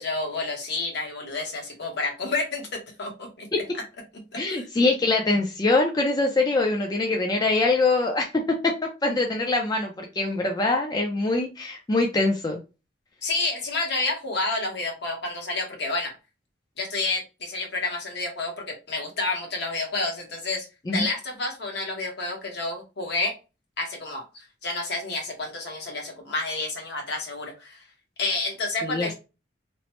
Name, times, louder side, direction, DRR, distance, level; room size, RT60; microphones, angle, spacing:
voice 1, 0.0-3.5 4.3-4.7 13.2-16.1 16.8-20.7 20.9-23.3 23.8-27.8 28.2-29.1, left 3 dB, 65° left, 1.0 m, -29 dB
voice 2, 4.4-8.7 9.0-12.6 20.9-21.1 28.8-29.1, left 2 dB, 20° left, 0.4 m, -23 dB
3.0 x 2.0 x 2.9 m
head